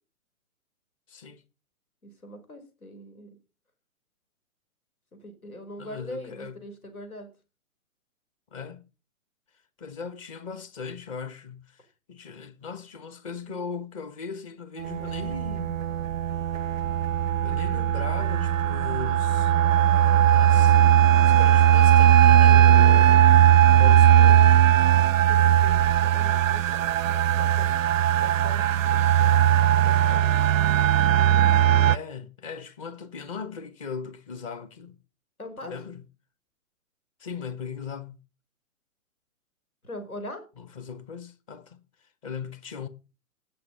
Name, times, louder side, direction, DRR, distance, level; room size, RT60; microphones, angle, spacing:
voice 1, 1.1-1.4 5.8-6.6 8.5-8.8 9.8-15.8 17.4-19.5 20.2-20.8 21.1-23.3 23.7-24.8 31.8-35.0 35.6-36.0 37.2-38.2 40.6-42.9, left 5 dB, 25° left, 0.9 m, -38 dB
voice 2, 2.0-3.3 5.1-7.3 13.5-13.6 25.3-27.7 28.2-29.4 29.7-30.5 35.4-35.7 39.8-40.4, equal, 85° left, 5.2 m, -42 dB
sound 1, 14.8-32.0, right 10 dB, 65° right, 0.5 m, -19 dB
17.5 x 6.4 x 5.4 m
figure-of-eight pair, 130°, 42 cm